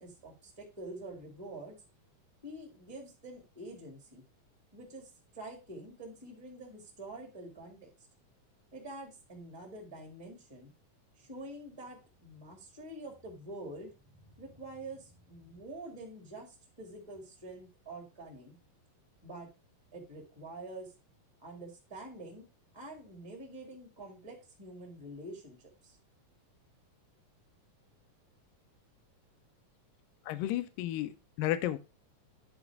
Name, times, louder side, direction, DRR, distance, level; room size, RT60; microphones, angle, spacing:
voice 1, 0.0-1.8 2.4-4.2 4.7-5.1 5.3-7.9 8.7-10.7 11.1-13.9 14.2-18.6 19.2-19.5 19.9-20.9 21.4-22.4 22.7-26.0, right 2 dB, 10° right, 1.2 m, -46 dB
voice 2, 30.3-31.8, left 13 dB, 85° left, 2.3 m, -33 dB
10.0 x 4.0 x 4.7 m
omnidirectional pair, 4.0 m